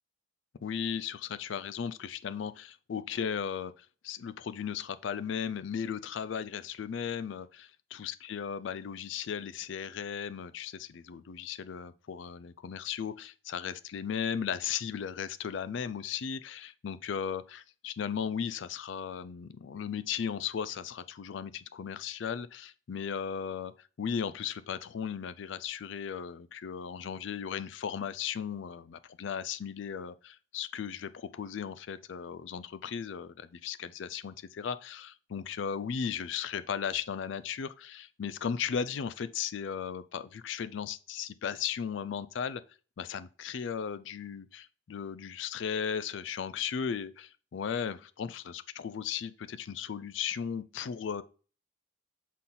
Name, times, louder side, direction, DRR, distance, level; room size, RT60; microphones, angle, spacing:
voice 1, 0.6-33.3 33.6-42.6 43.0-51.2, left 7 dB, 65° left, 0.4 m, -36 dB
7.2 x 4.2 x 3.8 m
head